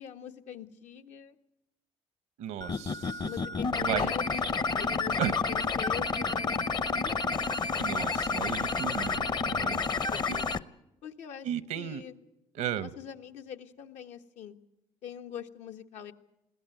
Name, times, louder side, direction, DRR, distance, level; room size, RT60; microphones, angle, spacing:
voice 1, 0.0-1.4 3.2-7.2 9.5-10.6 11.0-11.5 11.7-12.1 12.6-14.5 15.0-16.1, left 9 dB, 80° left, 6 dB, 1.4 m, -44 dB
voice 2, 2.4-3.3 3.8-4.1 5.2-5.3 7.8-9.8 10.3-10.4 11.4-12.0 12.5-12.9, right 11 dB, 85° right, 14 dB, 0.9 m, -35 dB
sound 1, 2.6-10.6, left 4 dB, 35° left, 0.8 m, -30 dB
21.5 x 16.0 x 9.2 m, 0.90 s
cardioid pair, 85°, 12 cm